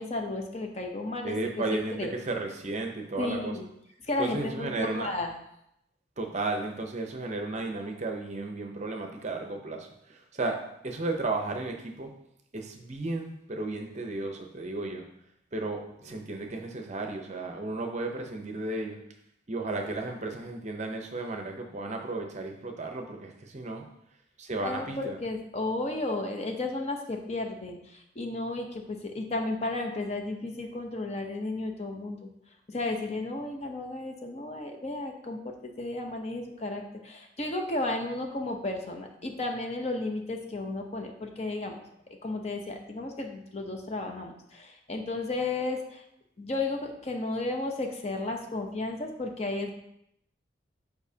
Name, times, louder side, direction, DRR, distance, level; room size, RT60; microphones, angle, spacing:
voice 1, 0.0-2.1 3.2-3.7 4.0-5.3 16.1-16.2 24.6-32.3 32.7-41.8 42.2-46.0 46.4-49.7, left 2 dB, 35° left, 3 dB, 0.7 m, -33 dB
voice 2, 1.2-3.5 4.2-5.1 6.2-10.6 10.8-12.1 12.5-15.0 15.5-19.0 19.5-23.8 24.4-25.2, right 2 dB, 35° right, 3 dB, 0.7 m, -34 dB
7.0 x 4.9 x 2.8 m, 0.77 s
head